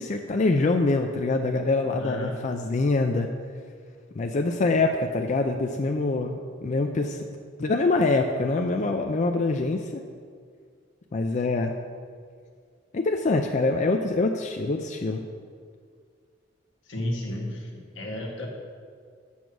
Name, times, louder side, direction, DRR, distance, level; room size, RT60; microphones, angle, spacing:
voice 1, 0.0-3.3 4.2-7.3 7.6-10.0 11.1-11.7 12.9-15.2, left 3 dB, 40° left, 4 dB, 0.4 m, -25 dB
voice 2, 2.0-2.4 16.9-17.7 17.9-18.5, left 1 dB, 75° left, 0 dB, 1.5 m, -32 dB
7.1 x 6.2 x 6.1 m, 2.1 s
head